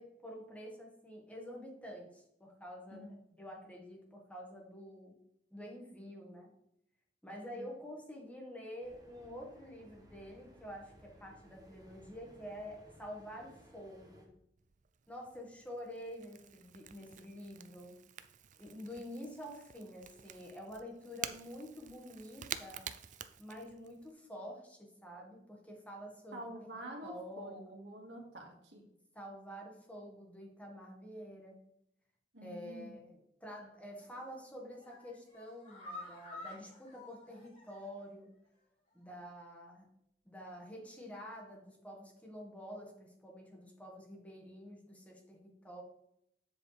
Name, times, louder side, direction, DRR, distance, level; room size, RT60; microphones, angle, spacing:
voice 1, 0.0-3.1 3.4-5.1 5.5-6.5 7.2-14.3 15.1-18.0 18.6-22.9 23.4-27.6 29.1-31.6 32.4-38.3 38.9-39.9 40.2-45.8, equal, 10° left, 0 dB, 1.6 m, -48 dB
sound 1, 8.8-14.3, equal, 20° right, 1.6 m, -60 dB
Crackle / Crack, 14.6-24.1, right 9 dB, 45° right, 0.5 m, -49 dB
voice 2, 26.3-28.9 32.3-32.9, right 1 dB, 80° right, 0 dB, 1.9 m, -47 dB
sound 2, 34.0-34.3 34.7-38.1 38.4-38.5 38.9-39.0, left 2 dB, 40° left, 3.2 m, -51 dB
7.6 x 7.3 x 3.3 m, 0.76 s
head